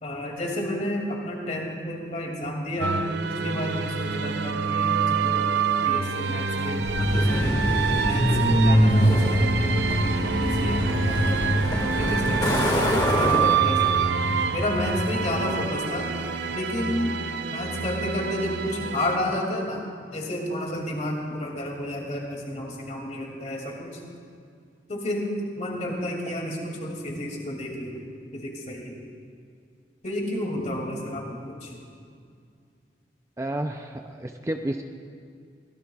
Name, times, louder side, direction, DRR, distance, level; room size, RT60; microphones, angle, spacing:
voice 1, 0.0-3.0 3.2-5.5 5.8-7.6 8.1-14.0 14.5-16.1 16.5-17.2 17.5-19.8 20.1-24.0 24.9-28.1 28.3-29.0 30.0-31.8, left 1 dB, 40° left, -1 dB, 2.5 m, -31 dB
sound 1, 2.8-19.2, right 6 dB, 65° right, 0.6 m, -27 dB
Truck, 6.8-15.5, equal, 25° left, 1.8 m, -23 dB
voice 2, 33.4-34.8, right 1 dB, 15° right, 5 dB, 0.5 m, -31 dB
23.5 x 17.0 x 2.4 m, 2.3 s
head